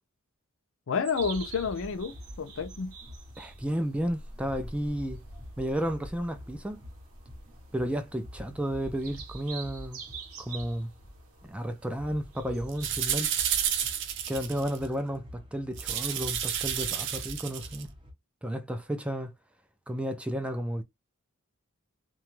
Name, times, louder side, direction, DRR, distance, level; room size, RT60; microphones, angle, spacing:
voice 1, 0.9-2.9, left 5 dB, 65° left, 0.5 m, -30 dB
sound 1, 1.0-13.8, right 5 dB, 85° right, 0.9 m, -48 dB
sound 2, 1.1-18.1, equal, 25° right, 0.7 m, -47 dB
voice 2, 3.4-5.2 5.6-6.8 7.7-10.0 10.4-10.9 11.4-13.3 14.3-17.9 18.4-19.3 19.9-20.8, equal, 5° right, 0.3 m, -32 dB
sound 3, 12.7-14.9 15.8-17.8, right 9 dB, 60° right, 0.5 m, -30 dB
2.9 x 2.3 x 3.0 m
head